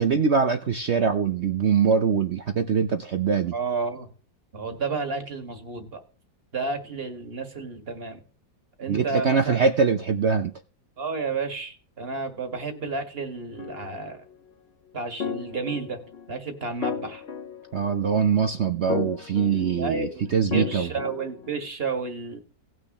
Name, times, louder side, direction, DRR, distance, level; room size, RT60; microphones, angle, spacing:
voice 1, 0.0-3.5 8.9-10.5 17.7-20.9, right 6 dB, 65° right, 0.6 m, -23 dB
voice 2, 3.5-4.1 4.5-6.0 6.5-8.2 8.8-9.6 11.0-14.2 14.9-16.0 16.3-17.2 19.4-22.4, right 4 dB, 30° right, 1.9 m, -31 dB
sound 1, 13.6-14.1 15.2-16.3 16.8-18.2 18.9-20.0 20.5-21.6, left 6 dB, 45° left, 0.9 m, -34 dB
18.5 x 6.2 x 3.0 m
omnidirectional pair, 2.1 m